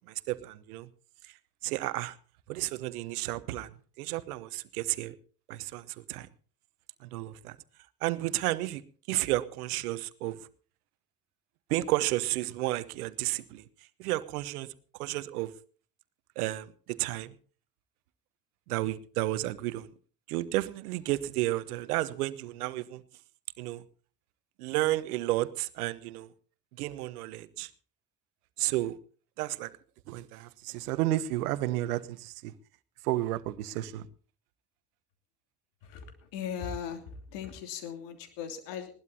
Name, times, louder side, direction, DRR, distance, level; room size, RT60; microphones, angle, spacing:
voice 1, 0.1-0.9 1.2-1.3 1.6-2.1 2.5-3.7 4.0-5.1 5.5-6.3 7.0-7.6 8.0-8.8 9.1-10.4 11.7-13.6 14.0-14.7 15.0-15.5 16.4-17.3 18.7-19.9 20.3-23.0 23.6-23.8 24.6-26.3 26.8-27.7 28.6-29.0 29.4-29.7 30.1-32.5 33.0-34.1, right 16 dB, 85° right, 1.0 m, -32 dB
voice 2, 35.9-37.0 37.3-39.0, left 8 dB, 75° left, 3.1 m, -38 dB
20.5 x 17.5 x 2.8 m
hypercardioid pair, 55°, 44 cm